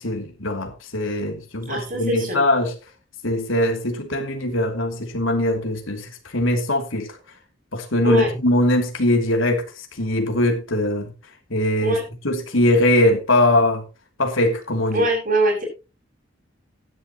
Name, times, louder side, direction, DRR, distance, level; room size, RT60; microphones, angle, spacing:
voice 1, 0.0-2.7 3.2-7.1 7.7-9.6 10.0-11.1 11.5-12.0 12.2-13.8 14.2-15.1, left 1 dB, 80° left, 2.9 m, -21 dB
voice 2, 1.7-2.4 8.0-8.3 11.8-12.0 14.9-15.6, right 1 dB, 45° right, 6.8 m, -21 dB
16.0 x 11.0 x 3.0 m
head